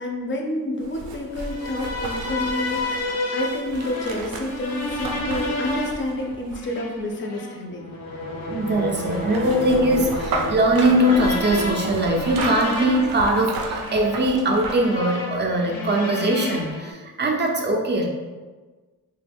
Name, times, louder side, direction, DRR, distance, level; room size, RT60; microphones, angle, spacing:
voice 1, 0.0-7.9, left 1 dB, 35° left, 1 dB, 0.4 m, -29 dB
sound 1, 0.8-7.0 8.7-15.0 15.3-15.4, right 3 dB, 85° right, 0.5 m, -33 dB
sound 2, 1.4-16.9, left 2 dB, 90° left, 0.6 m, -31 dB
voice 2, 8.5-18.1, right 1 dB, 30° right, 0 dB, 0.4 m, -21 dB
3.1 x 2.2 x 3.3 m, 1.3 s
wide cardioid pair, 175°, 35 cm